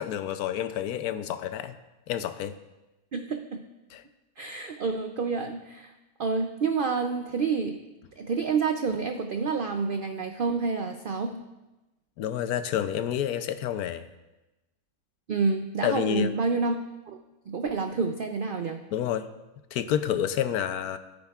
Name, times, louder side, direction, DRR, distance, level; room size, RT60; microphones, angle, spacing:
voice 1, 0.0-1.7 2.1-2.5 3.9-4.0 12.2-14.1 15.8-16.3 18.9-19.3 19.7-21.0, left 10 dB, 85° left, 11 dB, 1.1 m, -29 dB
voice 2, 3.1-3.6 4.4-5.9 6.2-7.8 8.2-11.4 15.3-16.8 17.5-18.8, right 4 dB, 75° right, 5 dB, 0.4 m, -28 dB
15.0 x 9.0 x 2.4 m, 1.0 s
omnidirectional pair, 1.6 m